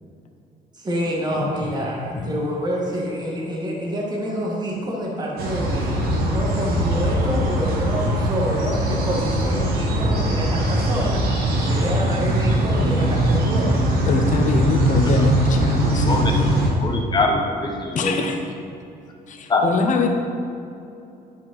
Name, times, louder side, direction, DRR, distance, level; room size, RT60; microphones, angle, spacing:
voice 1, 0.7-11.3 11.6-14.0, equal, 25° right, -3 dB, 1.8 m, -27 dB
voice 2, 2.0-2.3 14.1-16.1 16.7-16.8 17.9-18.5 19.3-20.1, left 4 dB, 50° left, 3 dB, 1.0 m, -24 dB
sound 1, 5.4-16.7, right 1 dB, 65° right, 1.6 m, -21 dB
voice 3, 16.8-18.2 19.5-19.6, left 3 dB, 25° left, 1 dB, 1.2 m, -23 dB
10.5 x 5.1 x 4.2 m, 2.6 s
cardioid pair, 110°, 17 cm